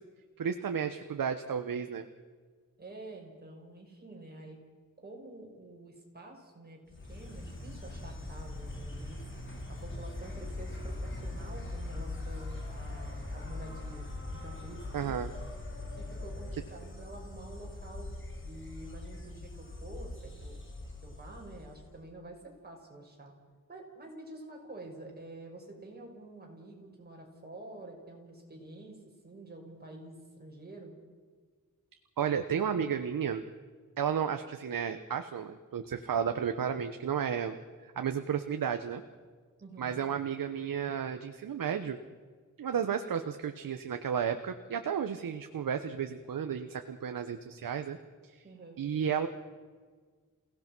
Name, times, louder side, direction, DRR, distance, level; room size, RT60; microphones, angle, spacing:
voice 1, 0.4-2.1 14.9-15.3 32.2-33.4 34.0-37.6 37.8-39.0 39.8-42.0 42.6-48.0 48.2-48.4 48.8-49.3, right 7 dB, 90° right, 7 dB, 1.1 m, -33 dB
voice 2, 2.8-4.6 5.0-6.8 7.0-9.2 9.7-14.1 14.4-15.2 16.0-18.1 18.4-20.6 21.0-23.3 23.7-30.9 39.6-40.0 48.4-48.8, right 2 dB, 30° right, 0 dB, 6.2 m, -48 dB
Insect, 6.9-22.0, left 2 dB, 35° left, 4.3 m, -41 dB
28.0 x 17.5 x 6.2 m, 1.6 s
wide cardioid pair, 100°, 33 cm